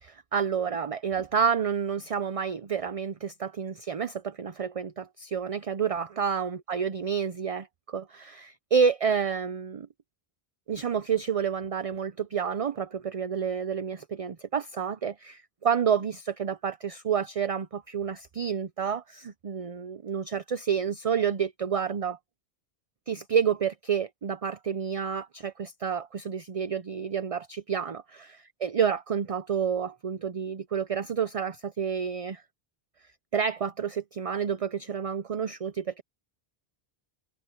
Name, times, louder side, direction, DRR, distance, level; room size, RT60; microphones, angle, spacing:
voice 1, 0.0-9.9 10.7-22.2 23.1-28.2 28.6-32.4 33.3-36.0, right 7 dB, 40° right, 0.6 m, -29 dB
omnidirectional pair, 1.0 m